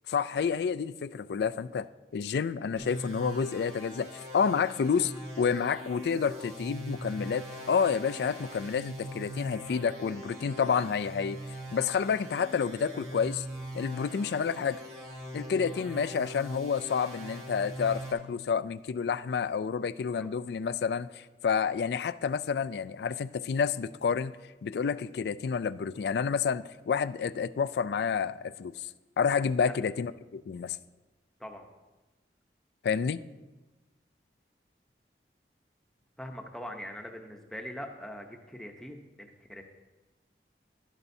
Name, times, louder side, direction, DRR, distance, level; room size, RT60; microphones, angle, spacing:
voice 1, 0.1-1.9 2.1-11.4 11.7-13.4 13.7-14.8 15.3-24.3 24.6-28.9 29.2-30.8 32.8-33.2, left 6 dB, 70° left, 16 dB, 0.3 m, -29 dB
sound 1, 2.8-18.1, equal, 70° right, 2.2 m, -42 dB
voice 2, 20.0-20.3 31.4-31.7 36.2-39.6, equal, 5° left, 3 dB, 0.8 m, -42 dB
12.5 x 11.0 x 2.7 m, 1.2 s
head